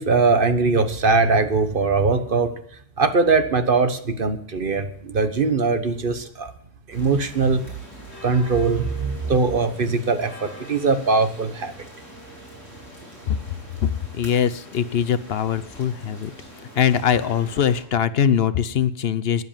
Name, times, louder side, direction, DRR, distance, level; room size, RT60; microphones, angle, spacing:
voice 1, 0.0-2.5 3.0-6.5 6.9-7.6 8.2-11.7, right 4 dB, 50° right, 9 dB, 1.2 m, -21 dB
sound 1, 6.9-17.8, equal, 15° left, 7.4 m, -43 dB
voice 2, 13.8-16.3 16.7-19.4, left 8 dB, 65° left, 15 dB, 0.9 m, -22 dB
12.5 x 9.6 x 7.3 m, 0.67 s
omnidirectional pair, 1.1 m